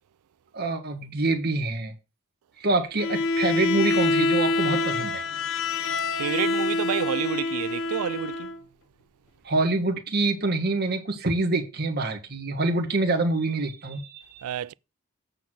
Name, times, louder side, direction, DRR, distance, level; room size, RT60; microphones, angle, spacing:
voice 1, 0.5-1.9 2.6-5.2 9.4-14.4, right 2 dB, 45° right, 1.6 m, -26 dB
Bowed string instrument, 3.0-8.6, left 3 dB, 60° left, 0.9 m, -26 dB
voice 2, 6.2-8.5 14.4-14.7, right 9 dB, 85° right, 0.4 m, -29 dB
8.7 x 4.0 x 6.2 m
head